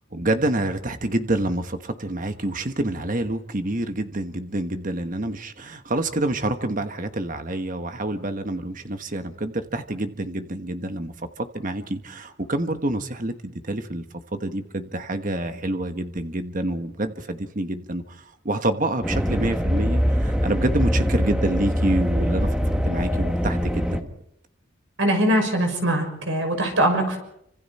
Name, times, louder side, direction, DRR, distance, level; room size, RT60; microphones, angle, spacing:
voice 1, 0.1-14.0 14.3-22.5 22.8-24.1, right 1 dB, 40° right, 8 dB, 1.3 m, -27 dB
sound 1, 19.0-24.0, equal, 5° right, 1.3 m, -23 dB
voice 2, 25.0-27.2, right 1 dB, 70° right, 4 dB, 6.3 m, -22 dB
28.5 x 26.0 x 4.3 m, 0.76 s
head